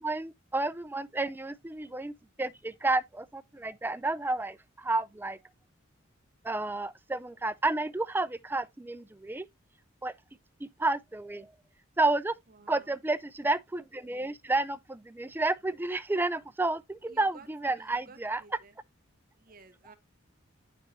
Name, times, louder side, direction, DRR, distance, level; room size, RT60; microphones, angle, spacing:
voice 1, 0.0-5.4 6.4-9.5 10.0-10.1 10.6-11.5 12.0-12.3 12.7-18.4, right 2 dB, 10° right, 0.3 m, -31 dB
voice 2, 12.5-13.0 17.1-17.5 17.7-18.7 19.4-19.9, right 4 dB, 45° right, 1.0 m, -54 dB
9.3 x 6.0 x 2.6 m
head